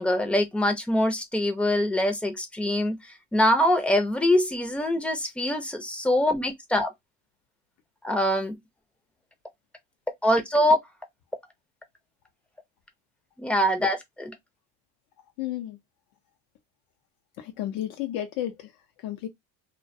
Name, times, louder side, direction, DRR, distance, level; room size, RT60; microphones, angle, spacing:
voice 1, 0.0-3.0 3.3-6.9 8.0-8.6 10.2-10.8 13.4-14.3, left 1 dB, 5° left, 0.5 m, -24 dB
voice 2, 15.4-15.8 17.4-18.7 19.0-19.3, left 12 dB, 65° left, 0.5 m, -32 dB
2.2 x 2.2 x 2.6 m
supercardioid pair, 110°, 37 cm